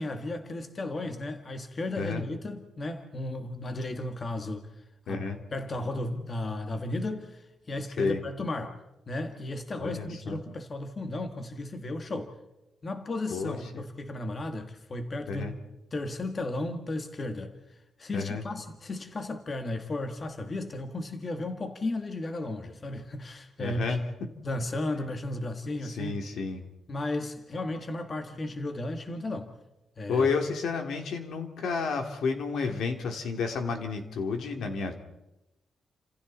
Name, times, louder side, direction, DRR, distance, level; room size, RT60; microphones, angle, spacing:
voice 1, 0.0-4.7 5.1-8.8 9.1-12.3 12.8-15.5 15.9-17.5 18.0-24.0 24.4-26.2 26.9-29.5 30.0-30.3, left 2 dB, 30° left, 6 dB, 1.8 m, -34 dB
voice 2, 5.1-5.4 8.0-8.2 9.8-10.4 13.3-13.6 15.3-15.5 18.1-18.4 23.6-24.0 25.8-26.6 30.1-34.9, left 5 dB, 80° left, 4 dB, 3.0 m, -30 dB
30.0 x 27.5 x 4.3 m, 0.96 s
wide cardioid pair, 150°, 0 cm